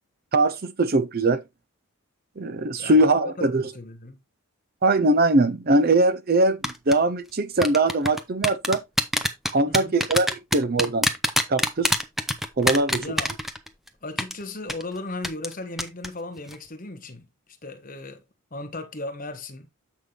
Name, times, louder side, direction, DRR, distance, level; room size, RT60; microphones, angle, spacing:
voice 1, 0.3-1.4 2.4-3.6 4.8-8.8 9.5-11.1 11.5-11.9 12.6-13.0, right 2 dB, 45° right, 0.6 m, -21 dB
voice 2, 3.4-4.2 9.7-9.9 13.0-13.3 14.0-17.3 17.6-18.2 18.5-19.7, left 2 dB, 40° left, 1.3 m, -36 dB
sound 1, 6.6-6.9 7.6-13.9 14.2-14.3 14.7-14.8 15.2-15.5 15.8-16.1 16.4-16.5, equal, ahead, 0.7 m, -23 dB
8.1 x 5.6 x 3.3 m
head